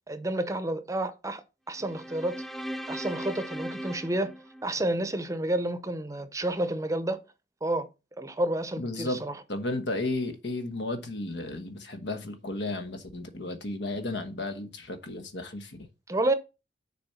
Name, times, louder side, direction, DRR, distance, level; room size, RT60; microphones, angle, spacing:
voice 1, 0.1-2.4 2.9-4.3 4.6-7.2 7.6-7.9 8.2-9.4 16.1-16.3, right 1 dB, 20° right, 0.7 m, -30 dB
sound 1, 1.8-5.2, equal, ahead, 0.3 m, -38 dB
voice 2, 8.8-9.2 9.5-15.9, left 2 dB, 80° left, 1.2 m, -33 dB
6.9 x 4.3 x 5.6 m
head